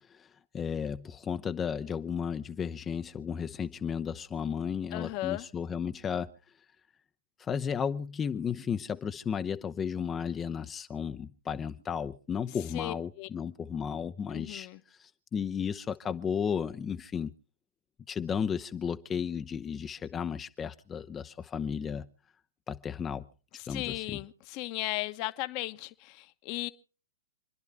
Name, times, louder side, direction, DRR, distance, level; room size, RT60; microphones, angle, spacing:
voice 1, 0.5-6.3 7.4-14.7 15.0-17.3 18.1-22.1 22.7-23.2 23.7-24.2, left 7 dB, 20° left, 0.7 m, -34 dB
voice 2, 4.9-5.5 12.7-13.3 14.3-14.8 23.6-26.7, left 19 dB, 40° left, 1.1 m, -36 dB
28.5 x 11.0 x 3.4 m
hypercardioid pair, 120°, 0 cm